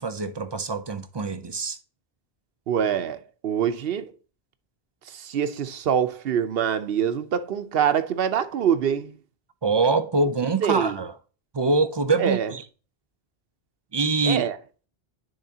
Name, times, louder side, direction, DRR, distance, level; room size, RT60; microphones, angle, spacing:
voice 1, 0.0-1.8 9.6-11.1 11.5-12.6 13.9-14.5, right 3 dB, 35° right, 0.4 m, -24 dB
voice 2, 2.7-4.1 5.0-9.2 10.6-11.0 12.2-12.5 14.2-14.6, right 8 dB, 65° right, 0.9 m, -25 dB
10.5 x 3.6 x 2.7 m
omnidirectional pair, 1.1 m